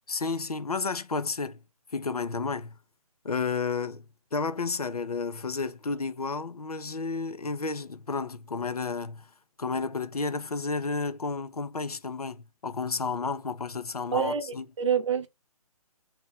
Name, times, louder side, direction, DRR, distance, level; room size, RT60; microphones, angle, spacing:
voice 1, 0.1-1.6 1.9-2.7 3.2-4.0 4.3-9.3 9.6-14.7, left 4 dB, 80° left, 0.7 m, -31 dB
voice 2, 14.1-15.3, right 7 dB, 50° right, 0.7 m, -27 dB
3.1 x 2.9 x 4.1 m
figure-of-eight pair, 135°, 19 cm